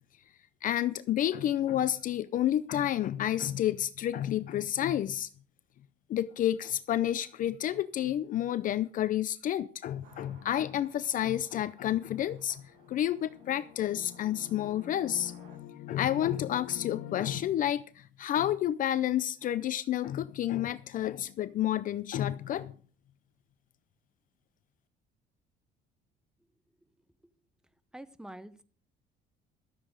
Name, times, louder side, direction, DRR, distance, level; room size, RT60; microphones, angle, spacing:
voice 1, 0.6-5.3 6.1-12.6 12.9-15.3 15.9-22.7, left 11 dB, 45° left, 15 dB, 0.6 m, -30 dB
sound 1, 10.0-15.6, right 5 dB, 70° right, 7.3 m, -59 dB
sound 2, 12.7-17.4, left 12 dB, 70° left, 1.3 m, -44 dB
voice 2, 27.9-28.6, right 1 dB, 5° right, 13 dB, 0.8 m, -45 dB
13.5 x 7.6 x 6.4 m, 0.42 s
cardioid pair, 150°, 19 cm